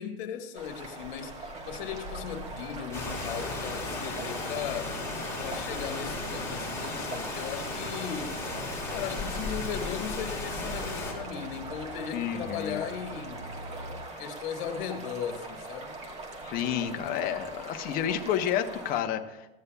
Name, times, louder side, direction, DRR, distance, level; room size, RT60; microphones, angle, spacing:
voice 1, 0.0-5.0 5.4-13.5 14.2-16.0, left 8 dB, 55° left, 6 dB, 1.4 m, -37 dB
sound 1, 0.5-19.0, right 2 dB, 20° right, 1.3 m, -42 dB
sound 2, 1.6-14.0, right 2 dB, 55° right, 1.8 m, -46 dB
Rain, 2.9-11.1, left 3 dB, 10° left, 2.8 m, -35 dB
voice 2, 12.1-12.8 16.4-19.5, left 10 dB, 30° left, 6 dB, 0.8 m, -30 dB
15.0 x 9.5 x 2.2 m, 0.97 s
supercardioid pair, 145°, 30 cm